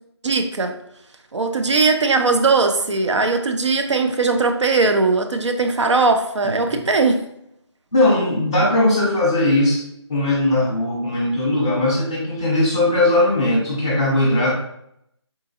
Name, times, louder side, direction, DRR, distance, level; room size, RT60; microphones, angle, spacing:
voice 1, 0.2-0.8 1.3-7.3, right 3 dB, 85° right, 6 dB, 0.5 m, -19 dB
voice 2, 7.9-9.8 10.1-14.5, left 1 dB, 10° left, -8 dB, 0.6 m, -19 dB
3.8 x 2.4 x 2.7 m, 0.76 s
figure-of-eight pair, 170°, 15 cm